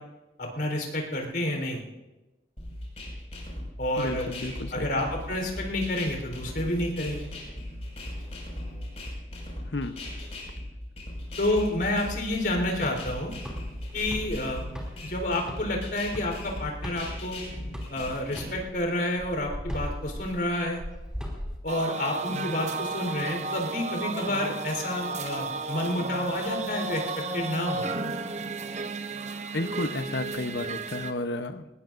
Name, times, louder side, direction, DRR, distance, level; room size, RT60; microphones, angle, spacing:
voice 1, 0.4-1.8 3.8-4.3 4.7-7.3 11.4-13.3 13.9-14.6 15.0-17.4 17.9-20.8 21.6-27.9, left 1 dB, 60° left, 1 dB, 4.1 m, -29 dB
sound 1, 2.6-18.6, left 1 dB, 35° left, 5.8 m, -38 dB
voice 2, 4.0-5.0 9.7-10.0 29.5-31.7, left 2 dB, 75° left, 9 dB, 0.9 m, -32 dB
sound 2, 12.3-17.4 17.7-21.6, equal, 5° right, 2.9 m, -39 dB
sound 3, 21.7-31.1, right 3 dB, 40° right, 0.8 m, -33 dB
21.0 x 20.0 x 2.6 m, 1.0 s
head